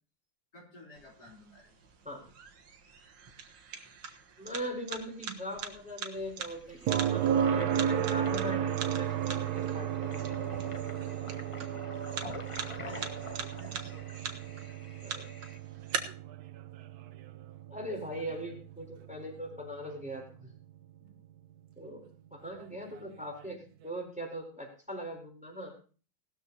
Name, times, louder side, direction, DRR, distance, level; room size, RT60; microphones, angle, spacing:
voice 1, 0.5-1.9 11.7-12.1 12.6-14.8 21.0-21.2, left 1 dB, 50° left, -2 dB, 4.3 m, -54 dB
sound 1, 1.0-16.0, right 7 dB, 85° right, 2.2 m, -43 dB
voice 2, 4.4-10.7 15.0-15.3 17.7-20.5 21.8-22.0 22.3-23.6 23.8-25.7, equal, 5° right, 1 dB, 3.9 m, -40 dB
Toilet flush, 6.5-15.6, left 3 dB, 35° left, 0.5 m, -48 dB
sound 2, 6.9-20.7 23.0-23.1, right 9 dB, 65° right, 1.0 m, -34 dB
19.0 x 13.0 x 2.9 m, 0.39 s
omnidirectional pair, 2.2 m